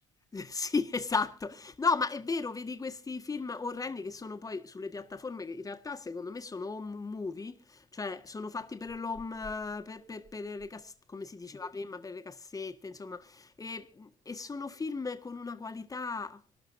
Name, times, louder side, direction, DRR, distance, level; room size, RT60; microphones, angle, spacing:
voice 1, 0.3-16.4, left 4 dB, 20° left, 1.6 m, -36 dB
26.0 x 13.0 x 2.7 m
cardioid pair, 110°, 17 cm